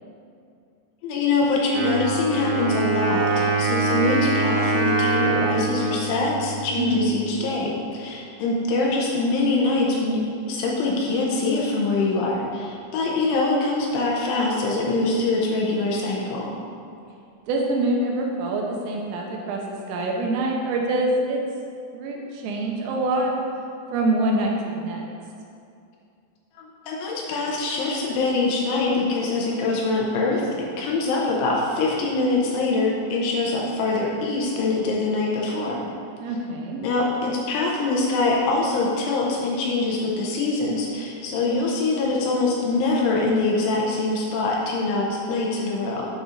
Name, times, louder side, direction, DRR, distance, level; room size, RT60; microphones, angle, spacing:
voice 1, 1.0-16.6 26.9-35.9 36.8-46.1, left 3 dB, 80° left, -3 dB, 2.9 m, -24 dB
Wind instrument woodwind instrument, 1.7-7.4, right 3 dB, 65° right, 4.0 m, -24 dB
voice 2, 6.8-7.1 17.5-19.6 19.9-21.4 21.9-23.3 23.9-25.0 36.2-36.8, right 2 dB, 85° right, 0 dB, 3.2 m, -25 dB
8.8 x 8.0 x 2.5 m, 2.5 s
omnidirectional pair, 6.0 m